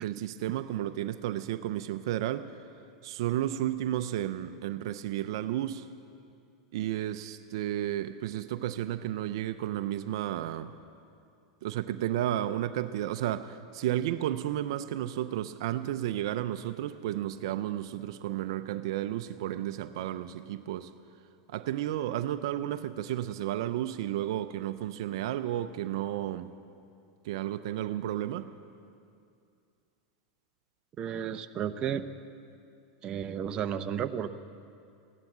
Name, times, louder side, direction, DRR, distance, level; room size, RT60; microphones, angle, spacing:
voice 1, 0.0-2.5 3.0-5.9 6.7-10.7 11.6-20.9 21.5-26.5 27.2-28.5, right 12 dB, 70° right, 11 dB, 0.6 m, -32 dB
voice 2, 31.0-32.0 33.0-34.3, right 9 dB, 35° right, 8 dB, 0.7 m, -32 dB
16.0 x 12.0 x 7.4 m, 2.5 s
supercardioid pair, 120°, 3 cm